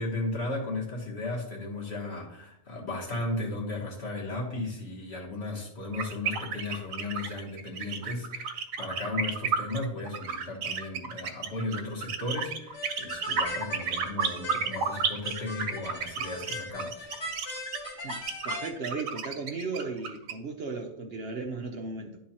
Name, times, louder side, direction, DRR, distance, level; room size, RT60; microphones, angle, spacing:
voice 1, 0.0-17.1, left 2 dB, 50° left, -1 dB, 1.6 m, -35 dB
sound 1, 5.9-20.3, right 5 dB, 80° right, 1.2 m, -32 dB
sound 2, 12.7-18.7, left 2 dB, 20° left, 1.1 m, -39 dB
voice 2, 18.0-22.2, right 4 dB, 55° right, 3 dB, 0.8 m, -36 dB
11.0 x 3.8 x 2.8 m, 0.77 s
omnidirectional pair, 1.4 m